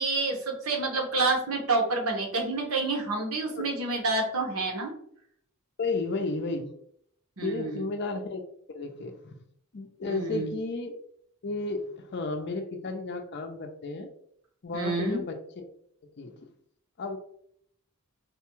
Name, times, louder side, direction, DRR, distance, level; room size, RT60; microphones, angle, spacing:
voice 1, 0.0-4.9 7.4-7.8 10.0-10.5 14.7-15.2, right 3 dB, 80° right, 0 dB, 1.0 m, -28 dB
voice 2, 5.8-6.7 7.4-8.4 8.7-9.4 9.7-10.9 11.4-14.1 14.6-15.7 16.2-16.4 17.0-17.2, left 3 dB, 50° left, 6 dB, 0.5 m, -33 dB
4.0 x 2.3 x 3.0 m, 0.68 s
head